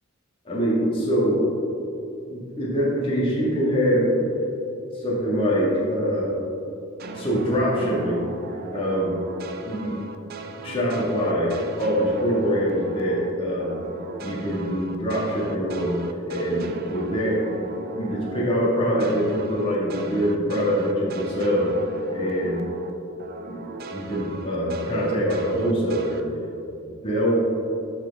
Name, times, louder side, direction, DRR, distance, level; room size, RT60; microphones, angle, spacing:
voice 1, 0.4-1.4 2.3-4.1 5.0-6.4 7.1-8.2 8.7-9.2 9.6-10.0 10.5-13.8 14.2-16.0 16.3-17.4 17.9-21.7 22.1-22.6 23.5-23.6 23.9-26.2 26.8-27.4, equal, 25° left, -7 dB, 1.6 m, -24 dB
sound 1, 7.0-13.3 13.6-22.9 23.2-26.2, right 3 dB, 50° right, 0.5 m, -38 dB
12.0 x 4.4 x 3.5 m, 2.7 s
head